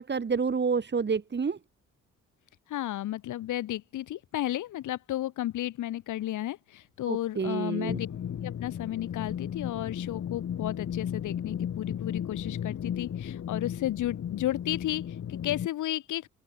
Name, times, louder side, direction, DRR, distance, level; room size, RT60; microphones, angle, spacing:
voice 1, 0.0-1.6 7.1-8.0, right 5 dB, 35° right, 6.1 m, -29 dB
voice 2, 2.7-8.1 8.4-16.3, left 13 dB, 80° left, 2.5 m, -33 dB
sound 1, 7.9-15.7, left 9 dB, 55° left, 2.2 m, -35 dB
open air
cardioid pair, 90°, 30 cm